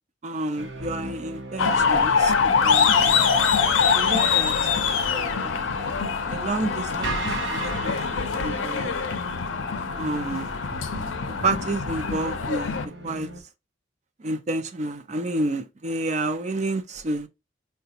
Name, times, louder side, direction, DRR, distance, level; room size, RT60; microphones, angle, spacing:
voice 1, 0.2-3.1 3.8-4.5 5.1-5.6 6.3-8.9 10.0-10.5 11.4-12.7 13.0-13.3 14.2-17.3, right 2 dB, 35° right, 0.5 m, -30 dB
sound 1, 0.6-13.4, right 1 dB, 70° right, 0.8 m, -37 dB
sound 2, 1.6-12.9, left 6 dB, 85° left, 0.5 m, -24 dB
4.8 x 2.2 x 2.7 m
head